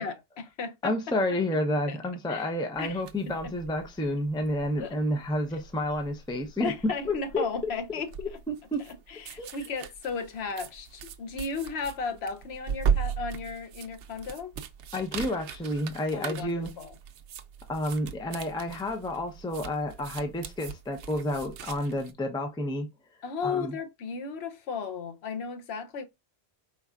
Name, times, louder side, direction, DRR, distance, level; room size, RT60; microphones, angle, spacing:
voice 1, 0.0-1.2 1.9-2.0 2.3-2.5 2.8-3.5 4.8-5.0 6.6-8.1 8.8-14.5 16.1-16.9 23.2-26.0, left 5 dB, 70° left, 1.0 m, -35 dB
voice 2, 0.8-6.7 7.0-7.5 8.5-8.8 9.4-9.5 14.9-16.7 17.7-22.9 23.4-23.7, left 1 dB, 5° left, 0.6 m, -30 dB
sound 1, 2.8-22.1, right 7 dB, 85° right, 0.9 m, -38 dB
4.6 x 4.2 x 2.4 m
omnidirectional pair, 1.1 m